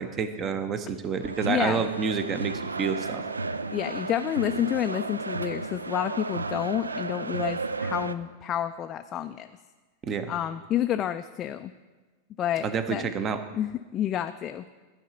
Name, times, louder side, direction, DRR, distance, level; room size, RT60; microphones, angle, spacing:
voice 1, 0.0-3.2 10.0-10.3 12.6-13.4, right 6 dB, 30° right, 10 dB, 0.8 m, -29 dB
sound 1, 1.2-8.1, right 3 dB, 80° right, 0.3 m, -33 dB
voice 2, 1.4-1.8 3.7-9.5 10.3-11.7 12.4-13.1 13.5-14.6, left 11 dB, 30° left, 8 dB, 0.3 m, -29 dB
13.0 x 4.8 x 6.8 m, 1.3 s
figure-of-eight pair, 90°, 0 cm